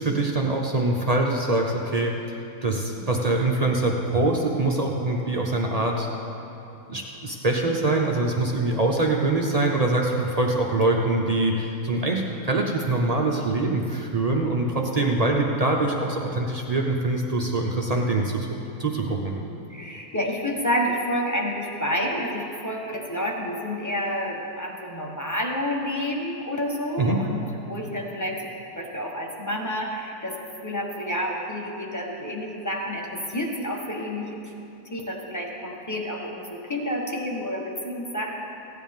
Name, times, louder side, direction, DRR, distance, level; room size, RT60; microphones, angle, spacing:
voice 1, 0.0-2.1 2.6-6.1 6.9-18.4 18.8-19.4 27.0-27.2, right 2 dB, 55° right, 0 dB, 0.4 m, -24 dB
voice 2, 19.3-28.4 28.7-34.5 34.9-38.3, equal, 15° left, -1 dB, 1.0 m, -29 dB
16.0 x 9.9 x 3.6 m, 2.9 s
omnidirectional pair, 1.7 m